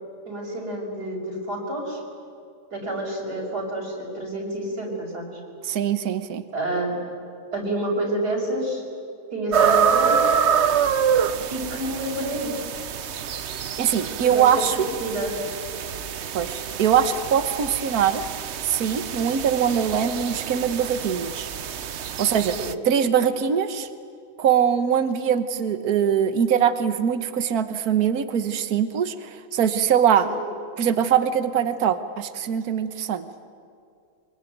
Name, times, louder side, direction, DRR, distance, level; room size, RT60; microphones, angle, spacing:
voice 1, 0.3-2.0 2.7-5.2 6.5-6.9 7.5-8.8 9.3-10.2 11.5-12.7 14.2-14.6 15.0-15.3 22.6-22.7 30.2-30.3, right 1 dB, 85° right, -1 dB, 6.4 m, -28 dB
voice 2, 5.6-6.4 13.8-14.8 16.3-18.2 18.6-21.5 22.2-22.6 22.9-23.9 24.4-30.3 30.8-33.3, right 8 dB, 70° right, 11 dB, 1.6 m, -22 dB
sound 1, 9.5-22.7, right 7 dB, 50° right, 0.9 m, -26 dB
24.5 x 24.0 x 9.3 m, 2.4 s
omnidirectional pair, 1.7 m